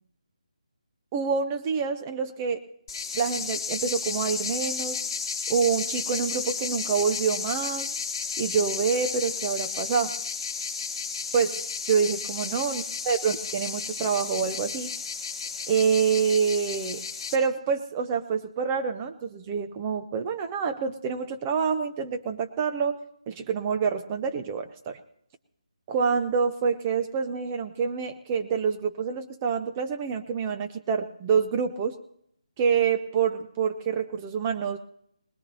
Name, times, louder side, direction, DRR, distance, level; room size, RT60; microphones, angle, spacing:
voice 1, 1.1-2.6 3.1-5.0 5.5-7.9 8.4-10.1 11.3-11.6 11.9-14.9 15.7-17.0 17.3-23.0 23.3-25.0 25.9-32.0 32.6-34.8, right 6 dB, 20° right, 6 dB, 0.7 m, -27 dB
sound 1, 2.9-17.4, left 5 dB, 35° left, 2.8 m, -33 dB
20.5 x 20.0 x 2.8 m, 0.71 s
figure-of-eight pair, 150°, 4 cm